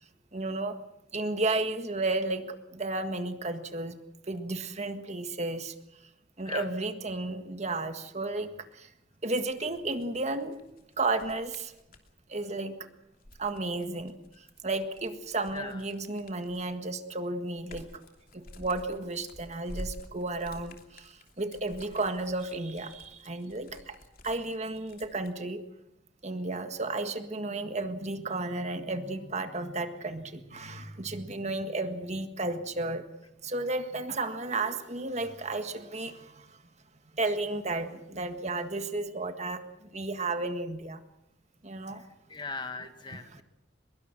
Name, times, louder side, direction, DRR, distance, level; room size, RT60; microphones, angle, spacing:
voice 1, 0.3-0.7 1.1-3.9 4.3-5.7 6.4-8.5 9.2-10.6 11.0-11.7 12.3-12.7 13.4-14.1 14.6-17.9 18.3-21.1 21.4-23.9 24.2-25.6 26.2-33.0 33.4-36.4 37.2-39.6 39.9-41.0 41.6-42.0 43.1-43.4, right 2 dB, 40° right, 8 dB, 1.7 m, -33 dB
sound 1, 9.3-12.1 13.0-16.8 17.2-25.3, left 1 dB, 50° left, 3.0 m, -49 dB
voice 2, 42.3-43.4, left 4 dB, 25° left, 8 dB, 1.8 m, -39 dB
23.5 x 22.0 x 6.1 m, 0.86 s
head